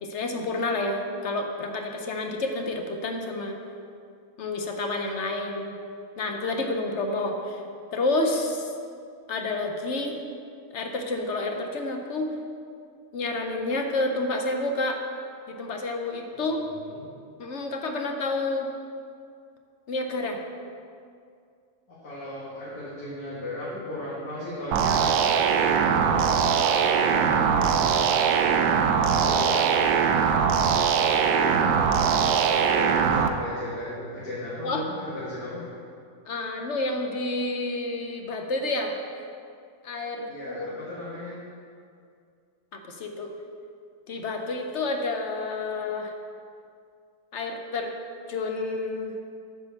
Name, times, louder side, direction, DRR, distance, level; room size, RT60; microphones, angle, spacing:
voice 1, 0.0-3.6 4.4-5.7 6.2-7.6 7.9-8.7 9.3-10.2 10.7-12.3 13.1-15.0 15.5-16.6 17.4-18.7 19.9-20.4 34.6-34.8 36.3-39.0 39.8-40.7 42.7-43.3 44.1-46.1 47.3-48.0 48.3-49.2, left 2 dB, 55° left, 3 dB, 0.9 m, -29 dB
voice 2, 16.8-17.1 21.9-27.7 29.0-30.0 30.9-32.1 32.4-35.7 40.3-41.3, left 1 dB, 85° left, -11 dB, 2.5 m, -36 dB
sound 1, 24.7-33.3, right 7 dB, 85° right, 1.1 m, -21 dB
8.5 x 4.9 x 6.8 m, 2.3 s
omnidirectional pair, 1.6 m